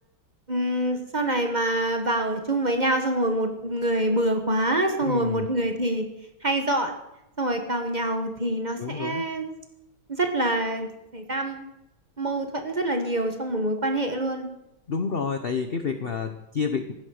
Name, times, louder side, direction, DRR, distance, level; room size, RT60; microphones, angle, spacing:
voice 1, 0.5-6.0 6.4-6.9 7.4-9.5 10.1-11.6 12.2-14.5, right 1 dB, 25° right, 5 dB, 1.3 m, -26 dB
voice 2, 5.0-5.5 8.8-9.3 14.9-16.9, left 5 dB, 60° left, 8 dB, 0.6 m, -29 dB
15.5 x 8.6 x 6.5 m, 0.90 s
omnidirectional pair, 2.2 m